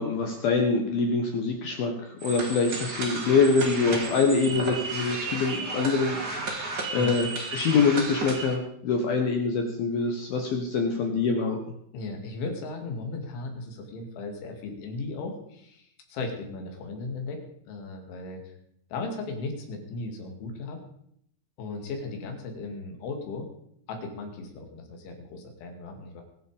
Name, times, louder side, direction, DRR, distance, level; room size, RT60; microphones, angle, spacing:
voice 1, 0.0-1.9 2.2-6.2 6.6-7.3 7.5-11.6, left 4 dB, 65° left, 3 dB, 2.8 m, -25 dB
sound 1, 2.2-8.5, right 3 dB, 30° right, 2.0 m, -33 dB
voice 2, 11.9-18.5 18.9-20.8 21.6-23.5 23.9-26.2, left 3 dB, 85° left, 3 dB, 4.8 m, -36 dB
22.5 x 7.9 x 5.1 m, 0.71 s
omnidirectional pair, 5.4 m